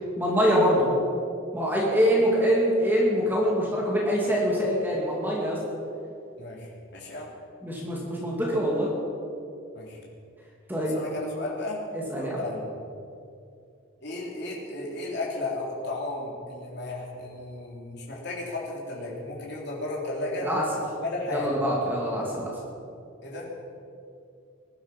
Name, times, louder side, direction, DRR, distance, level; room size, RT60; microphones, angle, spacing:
voice 1, 0.2-0.9 1.5-5.6 7.6-8.9 10.7-11.0 11.9-12.4 20.4-20.6 21.3-22.5, equal, 10° right, -4 dB, 2.6 m, -24 dB
voice 2, 6.9-7.3 9.8-10.0 10.9-11.8 12.1-12.7 14.0-20.5 21.0-21.5 23.2-23.5, left 2 dB, 55° left, -4 dB, 3.4 m, -34 dB
20.5 x 12.0 x 5.5 m, 2.6 s
head